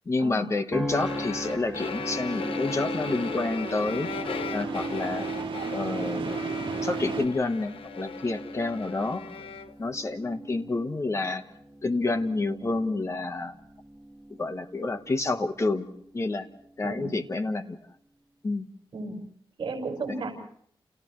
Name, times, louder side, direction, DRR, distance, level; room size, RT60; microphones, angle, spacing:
voice 1, 0.1-4.1 4.5-5.3 5.7-6.4 6.8-9.2 9.8-11.4 11.8-13.5 14.4-15.9 16.1-16.5 16.8-17.8 18.4-18.7, left 3 dB, 30° left, 7 dB, 1.3 m, -29 dB
sound 1, 0.7-15.2 15.7-16.1, right 1 dB, 5° right, 2.0 m, -40 dB
sound 2, 0.9-9.8, left 6 dB, 75° left, 1.0 m, -38 dB
sound 3, 1.1-7.3, right 4 dB, 80° right, 2.1 m, -35 dB
voice 2, 16.8-17.1 18.9-19.2 19.6-20.3, right 3 dB, 60° right, 2 dB, 5.4 m, -33 dB
29.5 x 29.0 x 3.2 m, 0.64 s
wide cardioid pair, 165°, 9 cm